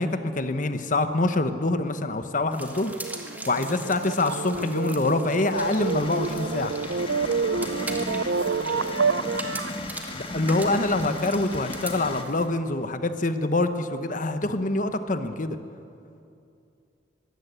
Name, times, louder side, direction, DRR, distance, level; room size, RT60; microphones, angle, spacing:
voice 1, 0.0-2.9 3.5-6.7 10.1-15.6, left 2 dB, 45° left, 9 dB, 1.1 m, -25 dB
sound 1, 2.5-12.5, right 2 dB, 10° right, 2.0 m, -41 dB
sound 2, 2.5-9.8, right 4 dB, 85° right, 0.7 m, -29 dB
sound 3, 5.5-12.2, left 2 dB, 30° left, 1.7 m, -36 dB
voice 2, 7.5-8.9 10.8-10.9, right 2 dB, 50° right, 3 dB, 1.4 m, -45 dB
22.5 x 16.0 x 8.2 m, 2.6 s
head